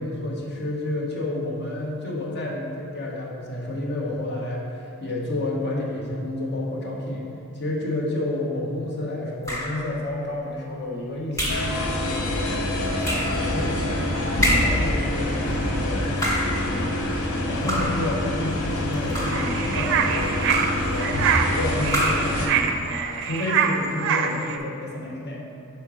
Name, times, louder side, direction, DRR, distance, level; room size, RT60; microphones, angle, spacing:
voice 1, 0.0-7.2 7.5-12.5 12.9-16.0 16.4-17.0 17.3-21.1 21.5-25.4, left 1 dB, 50° left, -3 dB, 1.1 m, -30 dB
sound 1, 9.4-9.9 11.4-11.8 13.0-13.4 14.4-14.9 16.0-16.6 17.7-18.1 18.9-19.5 20.5-20.9 21.9-22.3, equal, 15° left, 1.1 m, -26 dB
sound 2, 11.5-22.5, left 1 dB, 75° left, 0.8 m, -26 dB
sound 3, 19.3-24.6, right 7 dB, 55° right, 0.4 m, -25 dB
5.8 x 4.4 x 4.9 m, 2.7 s
head